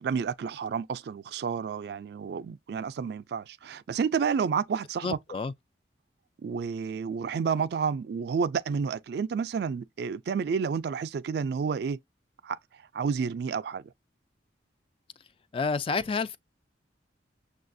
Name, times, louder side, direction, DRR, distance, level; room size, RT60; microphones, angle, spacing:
voice 1, 0.0-5.2 6.4-12.0 12.4-13.9, right 6 dB, 60° right, 0.3 m, -30 dB
voice 2, 5.0-5.5 15.5-16.4, left 4 dB, 30° left, 0.3 m, -29 dB
6.5 x 2.3 x 2.6 m
head